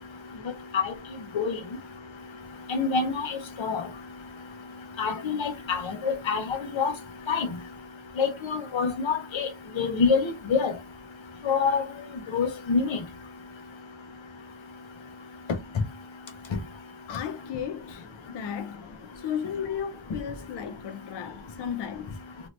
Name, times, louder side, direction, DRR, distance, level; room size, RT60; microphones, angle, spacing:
voice 1, 2.7-3.8 5.0-6.9 7.3-7.5 8.2-9.5 9.8-10.2 10.5-10.7 11.4-11.8 12.3-13.0, left 5 dB, 90° left, 0.9 m, -26 dB
voice 2, 17.1-18.1 18.3-18.8 19.2-22.2, left 8 dB, 65° left, 0.5 m, -34 dB
2.8 x 2.6 x 3.1 m
wide cardioid pair, 100°, 45 cm